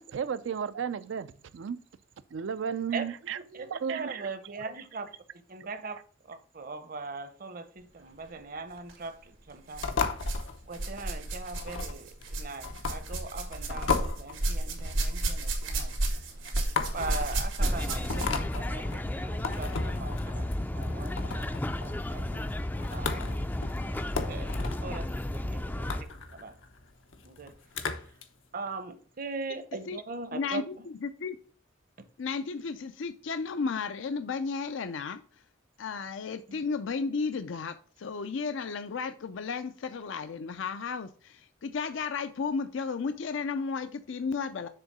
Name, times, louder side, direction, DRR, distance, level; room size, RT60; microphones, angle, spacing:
voice 1, 0.0-1.8 2.3-4.1 5.8-5.9, right 7 dB, 70° right, 0.4 m, -34 dB
voice 2, 3.5-5.1 5.5-10.0 10.7-15.9 16.9-22.6 22.9-26.6 27.2-27.5 28.5-30.9 36.5-36.6, right 3 dB, 50° right, 0.8 m, -41 dB
sound 1, 8.8-9.0 9.7-10.5 10.7-18.5 19.5-19.6 20.4-20.5, right 2 dB, 90° right, 2.1 m, -32 dB
sound 2, 9.8-28.2, left 4 dB, 90° left, 0.9 m, -36 dB
sound 3, 17.6-26.0, left 1 dB, 10° left, 0.4 m, -33 dB
voice 3, 30.3-31.4 32.2-35.2 35.8-44.7, left 5 dB, 75° left, 0.5 m, -33 dB
6.8 x 3.6 x 6.1 m
head